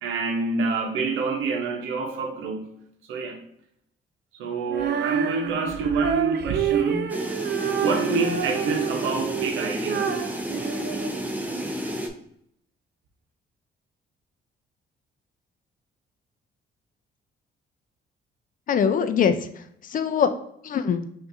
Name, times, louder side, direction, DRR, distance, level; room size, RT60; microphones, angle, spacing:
voice 1, 0.0-2.7 3.1-3.4 4.4-7.1 7.4-7.5 7.8-10.3, right 4 dB, 85° right, 0.8 m, -27 dB
Female singing, 4.7-11.7, right 9 dB, 60° right, 0.5 m, -29 dB
sound 1, 7.1-12.1, equal, 10° right, 0.6 m, -31 dB
voice 2, 18.7-20.3 20.6-21.1, left 7 dB, 45° left, 0.4 m, -23 dB
5.8 x 2.6 x 2.6 m
cardioid pair, 90°, 20 cm